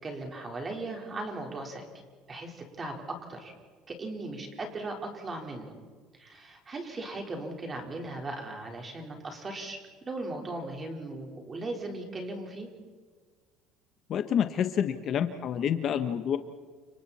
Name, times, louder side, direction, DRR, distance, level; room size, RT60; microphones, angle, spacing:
voice 1, 0.0-1.9 2.3-3.5 3.9-5.7 6.1-9.8 10.1-12.7, right 2 dB, 20° right, 2 dB, 4.3 m, -38 dB
voice 2, 14.1-16.4, left 8 dB, 40° left, 8 dB, 1.1 m, -28 dB
30.0 x 27.5 x 4.3 m, 1.5 s
cardioid pair, 155°, 0 cm